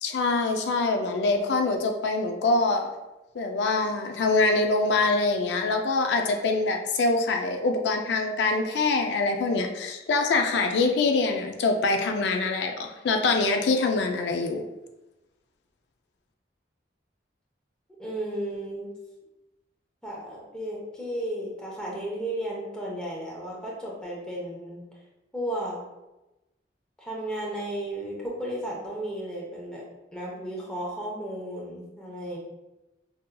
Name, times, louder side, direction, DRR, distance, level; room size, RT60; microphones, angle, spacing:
voice 1, 0.0-2.9 3.3-14.6, left 3 dB, 70° left, 4 dB, 0.3 m, -24 dB
voice 2, 18.0-18.9 20.0-24.8 25.3-25.8 27.0-29.8 30.1-32.4, right 1 dB, 5° left, -4 dB, 0.8 m, -34 dB
5.2 x 2.6 x 2.2 m, 1.0 s
head